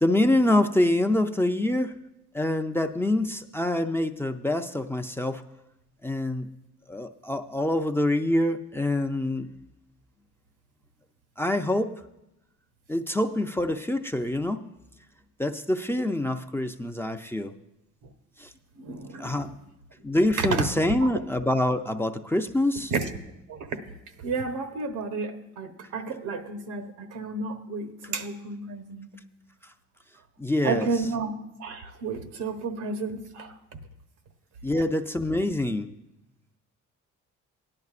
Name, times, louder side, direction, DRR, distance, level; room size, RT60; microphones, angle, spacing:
voice 1, 0.0-1.9 2.3-5.4 6.0-6.5 6.9-9.5 11.4-11.9 12.9-14.6 15.4-17.5 18.4-18.5 19.2-19.5 20.0-22.9 30.4-30.9 34.6-35.9, left 1 dB, 10° left, 6 dB, 0.4 m, -25 dB
voice 2, 18.7-19.5 20.4-20.7 21.0-21.1 22.9-23.1 23.5-23.6 24.2-29.1 30.6-31.3 31.6-33.5, right 4 dB, 85° right, 6 dB, 1.1 m, -31 dB
17.0 x 10.5 x 2.5 m, 0.88 s
cardioid pair, 90°, 30 cm